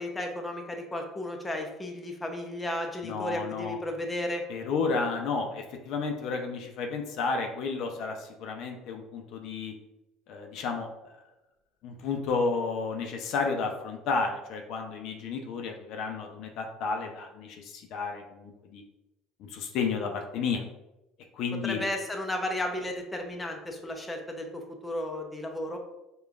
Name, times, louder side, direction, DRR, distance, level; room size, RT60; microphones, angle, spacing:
voice 1, 0.0-4.4 21.6-25.8, left 1 dB, 15° left, 2 dB, 0.6 m, -34 dB
voice 2, 3.0-3.8 4.5-9.7 10.3-10.9 11.8-18.8 19.4-20.6 21.4-21.8, left 4 dB, 65° left, 3 dB, 0.5 m, -32 dB
4.9 x 2.3 x 2.4 m, 0.93 s
supercardioid pair, 100°, 0 cm